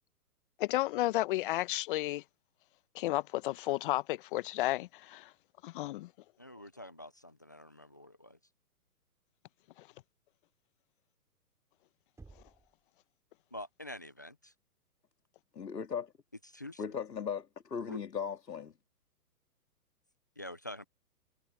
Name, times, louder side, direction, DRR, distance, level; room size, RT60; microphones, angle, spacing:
voice 1, 0.6-2.2 2.9-5.3 5.6-6.1 9.8-9.9, left 17 dB, 35° left, 1.0 m, -32 dB
voice 2, 6.4-8.4 13.5-14.5 16.4-16.9 17.9-18.0 20.4-20.8, left 1 dB, 15° left, 0.4 m, -46 dB
Knock, 12.2-12.8, right 3 dB, 5° right, 6.9 m, -54 dB
voice 3, 15.5-16.1 16.8-18.7, left 7 dB, 85° left, 2.5 m, -37 dB
hypercardioid pair, 135°, 47 cm